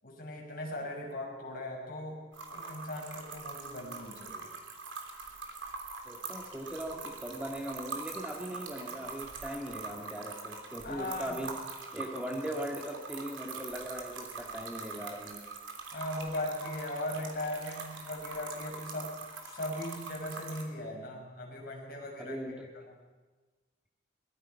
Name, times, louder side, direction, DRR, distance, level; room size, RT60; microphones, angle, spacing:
voice 1, 0.0-2.2 2.5-4.5 10.8-11.4 15.9-19.1 19.4-22.4, left 1 dB, 50° left, -1 dB, 5.8 m, -38 dB
sound 1, 2.3-20.6, right 4 dB, 90° right, 3.2 m, -43 dB
voice 2, 6.1-11.5 11.9-15.4 22.2-22.7, right 1 dB, 5° right, 1 dB, 1.9 m, -39 dB
22.5 x 21.0 x 5.7 m, 1.3 s
head